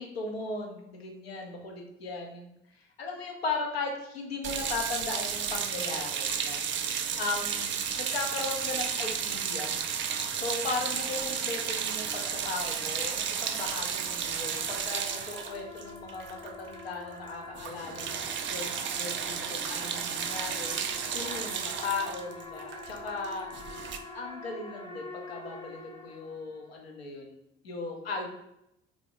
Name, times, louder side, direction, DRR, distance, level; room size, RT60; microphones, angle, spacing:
voice 1, 0.0-6.6 7.2-9.8 10.3-20.8 21.1-23.5 24.1-27.4 27.6-28.3, left 3 dB, 85° left, 2 dB, 0.6 m, -37 dB
sound 1, 4.4-16.8 17.1-17.3 17.5-24.0, right 7 dB, 40° right, 0.5 m, -33 dB
sound 2, 14.0-26.7, left 2 dB, 15° left, 0.7 m, -46 dB
3.6 x 2.4 x 3.5 m, 0.80 s
figure-of-eight pair, 45°, 30 cm